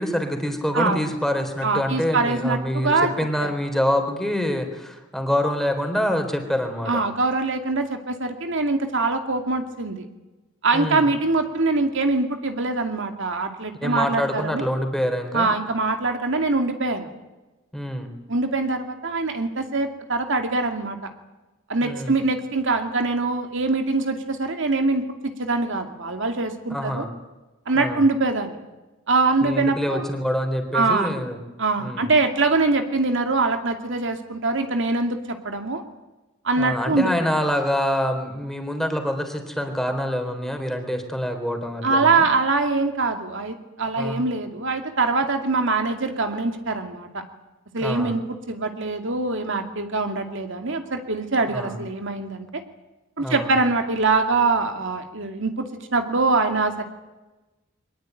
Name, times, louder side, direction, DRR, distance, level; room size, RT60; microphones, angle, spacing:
voice 1, 0.0-7.0 10.7-11.1 13.8-15.5 17.7-18.1 21.8-22.1 26.7-27.1 27.7-28.0 29.4-31.4 31.8-32.1 36.6-42.3 44.0-44.2 47.8-48.1 51.5-51.7 53.2-53.5, equal, ahead, 5 dB, 3.8 m, -26 dB
voice 2, 1.6-3.1 3.4-3.5 6.9-10.1 10.6-14.6 15.3-17.1 18.3-21.1 21.7-27.0 27.7-28.6 29.1-30.1 30.7-31.1 31.6-35.8 36.4-37.3 41.8-47.2 47.7-52.6 53.2-56.8, right 3 dB, 65° right, 5 dB, 2.5 m, -23 dB
23.0 x 20.5 x 9.2 m, 1.1 s
head